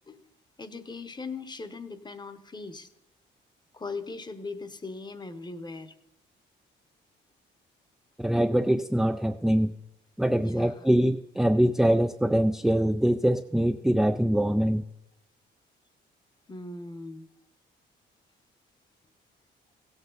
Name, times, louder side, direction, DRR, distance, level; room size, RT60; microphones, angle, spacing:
voice 1, 0.6-2.9 3.7-5.9 10.4-10.9 16.5-17.3, left 3 dB, 20° left, 11 dB, 0.9 m, -39 dB
voice 2, 8.2-9.7 10.2-14.8, equal, ahead, 6 dB, 0.4 m, -23 dB
16.0 x 8.1 x 3.9 m, 0.94 s
cardioid pair, 90°, 20 cm